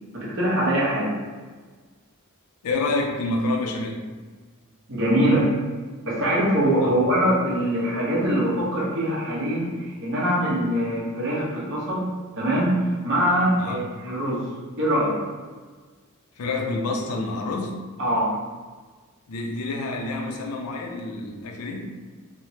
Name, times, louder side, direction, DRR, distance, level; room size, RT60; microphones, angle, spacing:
voice 1, 0.1-1.2 4.9-5.6 6.1-12.1 12.4-14.5 14.8-15.2 18.0-18.4, equal, 60° right, -6 dB, 0.9 m, -23 dB
voice 2, 2.6-4.0 6.8-6.9 13.6-13.9 16.4-17.8 19.3-21.9, left 2 dB, 85° left, 2 dB, 0.5 m, -28 dB
3.2 x 2.1 x 2.8 m, 1.4 s
head